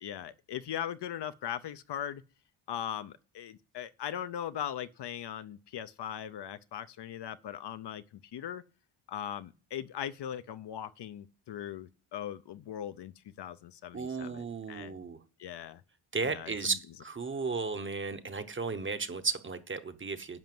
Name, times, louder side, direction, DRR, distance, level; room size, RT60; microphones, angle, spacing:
voice 1, 0.0-2.2 2.7-8.0 8.3-8.6 9.1-15.0 15.4-15.8 16.2-16.8, left 10 dB, 55° left, 0.6 m, -39 dB
voice 2, 13.9-15.2 16.1-20.4, right 4 dB, 25° right, 0.9 m, -34 dB
10.5 x 5.8 x 7.6 m
wide cardioid pair, 155°, 49 cm